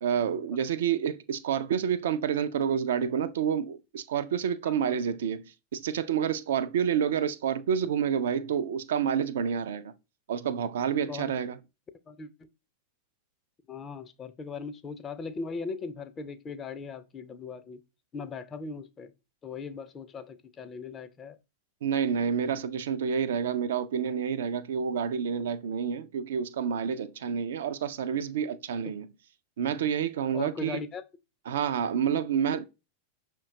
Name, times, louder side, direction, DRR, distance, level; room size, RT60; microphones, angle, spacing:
voice 1, 0.0-9.9 10.3-11.6 21.8-29.1 29.6-30.8 31.5-32.7, right 8 dB, 60° right, 0.3 m, -29 dB
voice 2, 12.1-12.5 13.7-17.8 18.1-19.1 19.4-21.4 30.3-31.0, left 4 dB, 25° left, 0.4 m, -39 dB
5.5 x 2.2 x 3.7 m
figure-of-eight pair, 90°, 0 cm